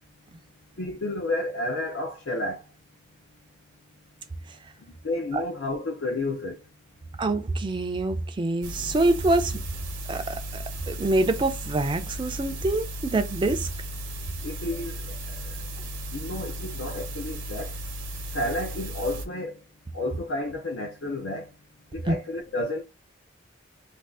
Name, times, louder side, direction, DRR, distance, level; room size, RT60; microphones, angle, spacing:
voice 1, 0.8-2.7 4.8-6.6 14.4-15.4 16.1-17.8 18.3-19.6 19.9-21.5 21.9-22.8, left 1 dB, 75° left, 0.5 m, -31 dB
voice 2, 7.2-9.6 10.1-10.4 10.9-13.7 22.1-22.2, right 2 dB, 25° right, 0.3 m, -25 dB
sound 1, 8.6-19.3, right 1 dB, 70° right, 0.6 m, -35 dB
2.5 x 2.4 x 3.4 m
head